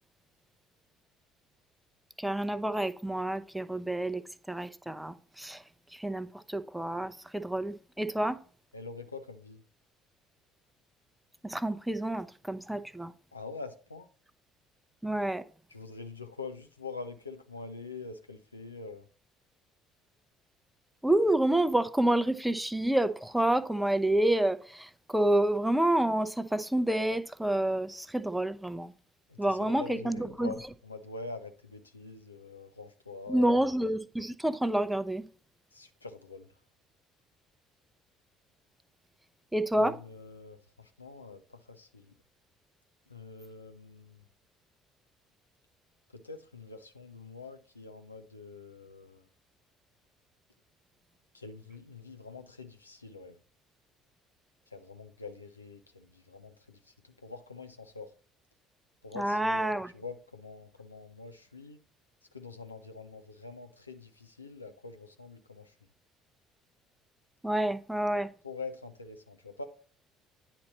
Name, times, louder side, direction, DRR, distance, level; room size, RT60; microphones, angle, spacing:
voice 1, 2.2-4.2 4.5-5.6 5.9-8.4 11.4-13.1 15.0-15.4 21.0-28.9 29.4-30.5 33.3-35.2 39.5-40.0 59.2-59.9 67.4-68.3, right 1 dB, 5° right, 0.6 m, -28 dB
voice 2, 8.7-9.6 13.3-14.1 15.7-19.1 29.3-33.5 35.7-36.5 39.7-42.1 43.1-44.2 46.1-49.2 51.3-53.4 54.7-58.1 59.0-61.8 62.3-65.7 68.4-69.6, left 4 dB, 90° left, 0.5 m, -45 dB
9.6 x 4.2 x 4.1 m
figure-of-eight pair, 55°, 0 cm